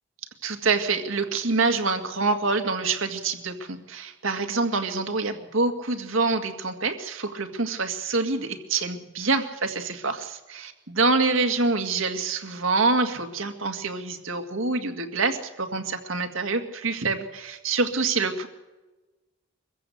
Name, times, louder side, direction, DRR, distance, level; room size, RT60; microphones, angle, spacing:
voice 1, 0.4-18.5, right 3 dB, 70° right, 6 dB, 2.1 m, -26 dB
23.5 x 15.5 x 8.0 m, 1.1 s
head